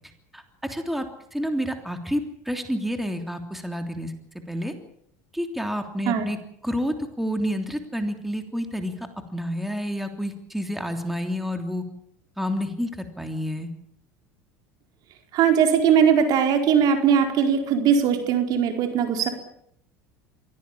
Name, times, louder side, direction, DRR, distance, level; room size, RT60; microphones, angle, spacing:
voice 1, 0.3-1.1 1.3-4.1 4.5-4.7 5.3-6.4 6.6-11.8 12.4-13.7, equal, 5° right, 6 dB, 3.3 m, -29 dB
voice 2, 15.3-19.3, right 7 dB, 60° right, 5 dB, 4.6 m, -20 dB
24.0 x 17.0 x 8.7 m, 0.69 s
hypercardioid pair, 85°, 8 cm